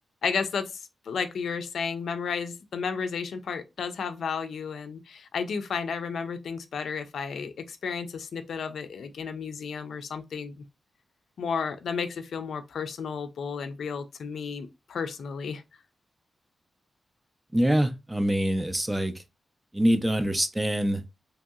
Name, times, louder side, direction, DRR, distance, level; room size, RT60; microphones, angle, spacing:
voice 1, 0.2-10.6 11.4-15.6, left 6 dB, 75° left, 0.4 m, -33 dB
voice 2, 17.5-19.1 19.7-21.0, right 1 dB, 10° right, 0.3 m, -24 dB
2.9 x 2.7 x 2.2 m
wide cardioid pair, 175°, 0 cm